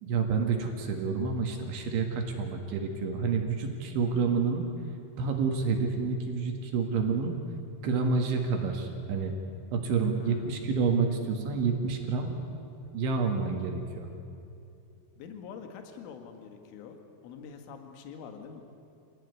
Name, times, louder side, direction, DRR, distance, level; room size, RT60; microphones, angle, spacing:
voice 1, 0.0-4.7 5.2-7.4 7.8-9.3 9.7-12.3 12.9-14.1, right 5 dB, 70° right, 3 dB, 4.0 m, -29 dB
voice 2, 10.1-10.5 15.2-18.6, left 6 dB, 75° left, 5 dB, 4.2 m, -45 dB
27.0 x 18.0 x 9.6 m, 2.7 s
omnidirectional pair, 5.9 m